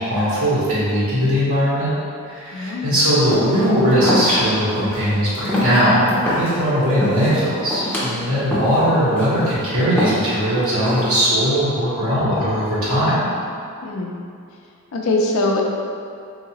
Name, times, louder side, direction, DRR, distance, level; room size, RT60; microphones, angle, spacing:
voice 1, 0.0-1.9 2.2-13.3, equal, 85° right, -10 dB, 1.4 m, -19 dB
voice 2, 2.5-3.0 13.8-14.1 14.9-15.6, left 2 dB, 70° left, -1 dB, 0.5 m, -22 dB
sound 1, 3.3-3.7 4.0-4.4 4.7-5.0 5.3-6.6 6.9-7.3 7.7-8.1 8.5-8.8 9.2-9.5 10.0-10.4 10.9-11.3, left 1 dB, 10° left, 0.6 m, -23 dB
3.8 x 2.8 x 2.9 m, 2.4 s
head